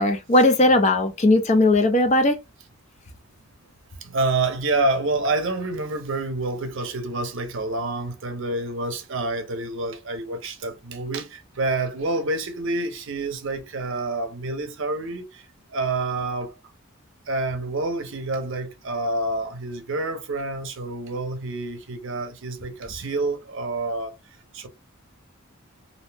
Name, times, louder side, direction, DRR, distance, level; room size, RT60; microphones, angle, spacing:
voice 1, 0.0-2.4, left 2 dB, 30° left, 0.4 m, -18 dB
voice 2, 4.0-16.5 17.3-24.2 24.5-24.7, right 2 dB, 60° right, 0.6 m, -28 dB
2.6 x 2.0 x 3.2 m
head